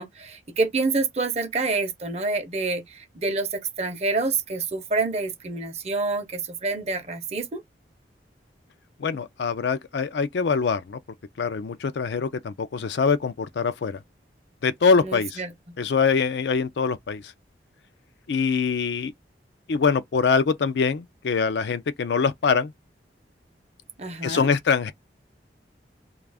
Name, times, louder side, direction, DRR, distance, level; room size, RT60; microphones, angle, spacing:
voice 1, 0.0-7.6 15.0-15.7 24.0-24.5, right 3 dB, 35° right, 0.6 m, -27 dB
voice 2, 9.0-11.0 11.4-14.0 14.6-15.4 15.8-17.2 18.3-19.1 19.7-22.7 24.2-24.9, left 5 dB, 70° left, 0.4 m, -23 dB
2.4 x 2.4 x 3.3 m
head